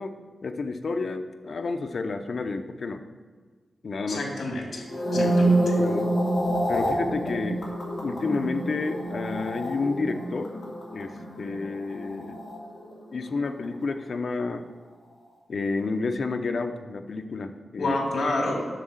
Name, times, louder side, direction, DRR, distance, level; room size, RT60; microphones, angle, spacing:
voice 1, 0.0-3.0 3.8-4.3 5.1-5.3 5.8-6.1 6.7-7.6 8.0-10.5 10.9-12.4 13.1-14.6 15.5-17.9, left 3 dB, 50° left, 7 dB, 0.6 m, -30 dB
voice 2, 4.1-4.8 5.1-5.7 17.8-18.6, left 2 dB, 65° left, -1 dB, 2.6 m, -28 dB
sound 1, 4.8-13.2 13.5-13.8, right 1 dB, 25° left, 2.4 m, -27 dB
7.5 x 6.5 x 7.9 m, 1.5 s
wide cardioid pair, 165°, 0 cm